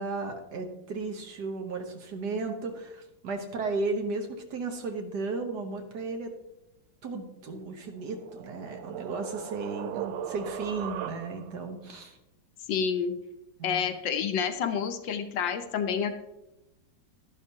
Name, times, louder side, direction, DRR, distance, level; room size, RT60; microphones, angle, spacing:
voice 1, 0.0-6.3 7.0-12.2 13.6-13.8, right 3 dB, 60° right, 5 dB, 1.5 m, -34 dB
sound 1, 7.8-11.6, right 10 dB, 75° right, 1.3 m, -38 dB
voice 2, 12.7-13.1 13.6-16.1, left 7 dB, 70° left, 7 dB, 1.4 m, -29 dB
11.5 x 11.0 x 2.8 m, 0.91 s
omnidirectional pair, 2.2 m